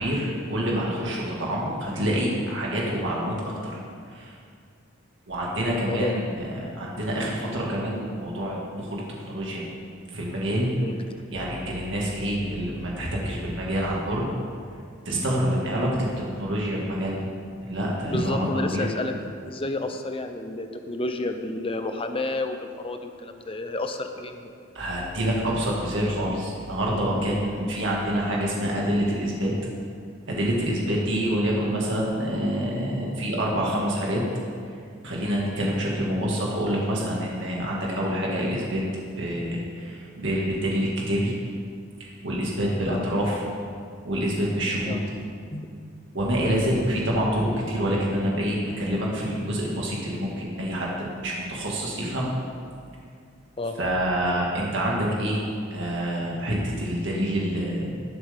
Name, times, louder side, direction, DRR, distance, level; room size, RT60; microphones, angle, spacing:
voice 1, 0.0-3.3 3.6-3.8 4.1-4.3 5.3-9.0 9.3-9.7 10.1-10.7 11.3-14.3 15.1-17.2 17.6-18.9 24.7-29.5 30.3-34.2 35.0-38.8 39.2-41.3 42.0-43.4 44.1-45.0 46.1-52.3 53.8-55.4 55.7-57.9, equal, 65° right, -4 dB, 2.1 m, -27 dB
voice 2, 5.7-6.2 10.8-11.0 18.1-19.1 19.4-24.5 27.3-27.4 42.8-43.1 44.9-45.0 45.5-45.7 53.6-53.8, left 2 dB, 30° left, 6 dB, 0.8 m, -30 dB
19.0 x 7.8 x 3.6 m, 2.2 s
head